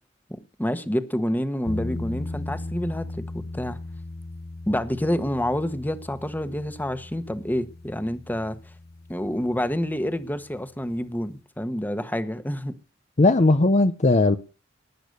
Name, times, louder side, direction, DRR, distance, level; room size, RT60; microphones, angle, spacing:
voice 1, 0.3-3.8 4.7-8.6 9.1-12.8, equal, 10° left, 1.3 m, -28 dB
sound 1, 1.7-10.6, left 2 dB, 55° left, 1.1 m, -37 dB
voice 2, 13.2-14.4, left 2 dB, 40° left, 0.8 m, -18 dB
19.0 x 10.0 x 6.6 m
head